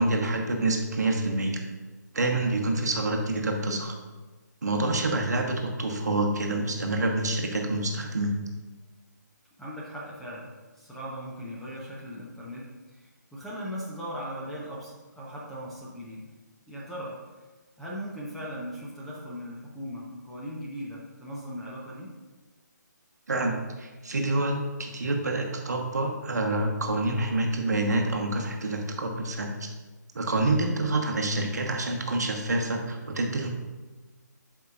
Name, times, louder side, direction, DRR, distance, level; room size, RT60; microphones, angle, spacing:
voice 1, 0.0-1.6 2.1-3.9 4.6-8.4 23.3-29.7 30.1-33.5, right 2 dB, 60° right, 3 dB, 1.1 m, -27 dB
voice 2, 4.8-5.1 9.6-16.3 16.7-17.2 17.8-22.1 30.4-30.8, equal, ahead, -7 dB, 0.9 m, -39 dB
12.0 x 5.0 x 2.5 m, 1.3 s
figure-of-eight pair, 145°, 10 cm